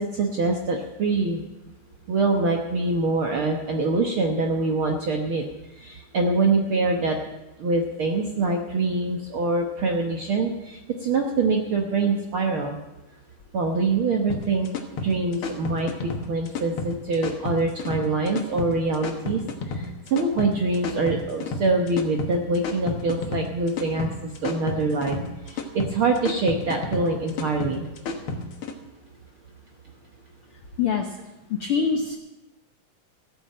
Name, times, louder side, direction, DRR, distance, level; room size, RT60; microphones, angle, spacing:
voice 1, 0.0-1.5 2.1-5.4 5.8-7.2 7.6-12.8 13.5-14.7 15.0-25.2 25.4-27.9, right 3 dB, 65° right, 1 dB, 1.3 m, -24 dB
sound 1, 14.3-28.7, left 3 dB, 55° left, 1.7 m, -32 dB
voice 2, 30.8-31.2 31.5-32.2, left 6 dB, 80° left, 4 dB, 1.2 m, -24 dB
15.0 x 8.7 x 7.7 m, 1.0 s
omnidirectional pair, 3.9 m